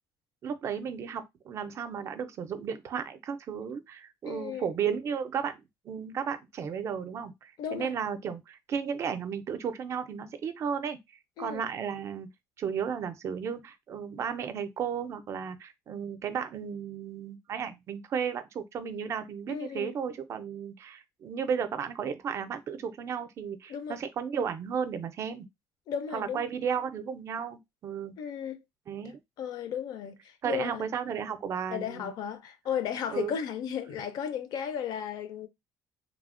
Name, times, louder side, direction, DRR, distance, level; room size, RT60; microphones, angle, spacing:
voice 1, 0.4-11.0 11.4-12.3 12.6-25.5 26.1-28.1 28.9-29.2 30.4-32.1 33.1-33.3, right 7 dB, 40° right, 0.4 m, -34 dB
voice 2, 4.3-4.7 7.6-7.9 11.4-11.6 19.5-19.9 23.7-24.0 25.9-26.4 28.2-28.6 29.4-30.9 31.7-35.5, left 8 dB, 70° left, 0.5 m, -34 dB
3.1 x 2.0 x 2.4 m
cardioid pair, 160°, 7 cm